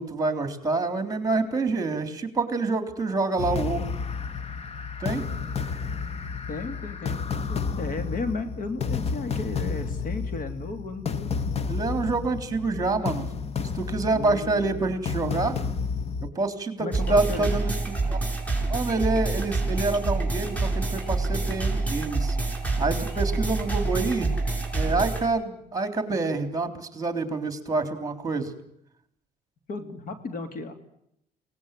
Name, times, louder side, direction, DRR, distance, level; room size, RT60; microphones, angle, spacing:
voice 1, 0.0-3.8 5.0-5.3 11.6-13.3 13.7-15.6 16.2-18.2 18.7-22.4 22.8-24.3 24.7-28.5, right 3 dB, 20° right, 8 dB, 3.6 m, -27 dB
sound 1, 3.4-16.3, left 5 dB, 35° left, 1.2 m, -31 dB
voice 2, 6.5-7.2 7.5-11.5 12.6-13.2 14.1-14.9 16.8-17.5 29.7-30.7, left 3 dB, 55° left, 9 dB, 3.1 m, -35 dB
sound 2, 16.9-25.3, right 3 dB, 10° left, 6.7 m, -27 dB
23.5 x 18.5 x 9.2 m, 0.76 s
cardioid pair, 110°, 17 cm